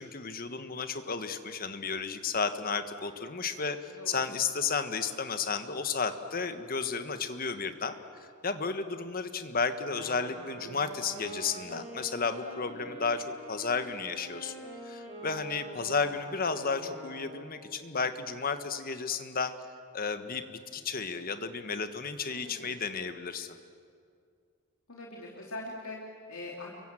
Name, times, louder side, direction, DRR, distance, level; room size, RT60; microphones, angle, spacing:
voice 1, 0.0-14.5 14.8-19.5 19.9-23.5, left 5 dB, 40° left, 9 dB, 1.4 m, -33 dB
Wind instrument woodwind instrument, 9.7-17.7, right 2 dB, 30° right, 5.6 m, -45 dB
voice 2, 22.3-22.8 24.9-26.8, left 2 dB, 70° left, -2 dB, 3.0 m, -43 dB
29.5 x 23.5 x 7.7 m, 2.2 s
head